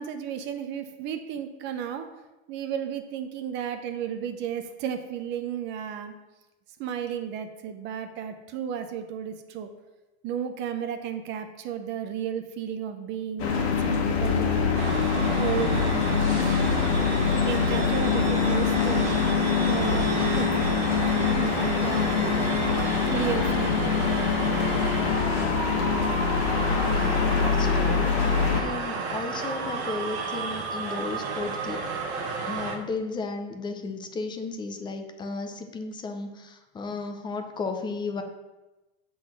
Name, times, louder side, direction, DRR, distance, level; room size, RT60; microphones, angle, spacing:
voice 1, 0.0-2.1 2.5-6.1 6.8-9.7 10.2-14.7 15.4-16.4 17.3-19.1 19.7-20.1 20.4-20.5 21.0-22.5 23.1-23.9, right 8 dB, 35° right, 8 dB, 0.6 m, -33 dB
sound 1, 13.4-28.6, left 6 dB, 75° left, 1.5 m, -24 dB
sound 2, 14.7-32.8, right 4 dB, 85° right, 1.5 m, -32 dB
voice 2, 26.9-31.9 32.5-38.2, left 3 dB, 15° left, 6 dB, 0.5 m, -34 dB
7.6 x 3.9 x 6.1 m, 1.1 s
supercardioid pair, 150°, 32 cm